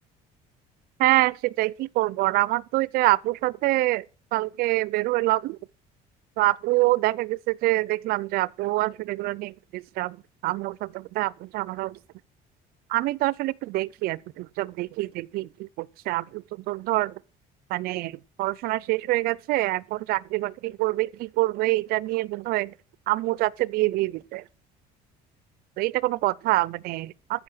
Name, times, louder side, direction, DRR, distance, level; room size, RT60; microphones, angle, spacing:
voice 1, 1.0-4.0 4.3-5.6 6.4-10.2 10.4-11.9 12.9-17.1 17.7-18.1 18.4-22.7 23.1-24.4 25.8-27.4, right 19 dB, 65° right, 0.5 m, -26 dB
14.5 x 5.6 x 6.3 m
cardioid pair, 155°, 17 cm